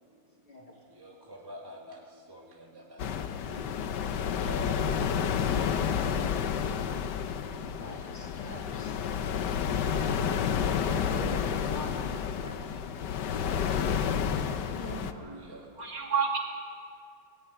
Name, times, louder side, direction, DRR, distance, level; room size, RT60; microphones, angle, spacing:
voice 1, 1.0-2.0 2.3-2.4 2.9-3.0 4.4-4.9 14.8-15.6, right 1 dB, 15° right, -2 dB, 1.5 m, -44 dB
sound 1, 3.0-15.1, left 7 dB, 70° left, 1.4 m, -30 dB
voice 2, 7.4-9.0 10.4-12.6 14.7-15.1, equal, 25° left, -2 dB, 3.4 m, -43 dB
voice 3, 15.5-16.4, right 6 dB, 75° right, 0 dB, 3.2 m, -30 dB
18.0 x 16.0 x 9.2 m, 2.3 s
omnidirectional pair, 2.0 m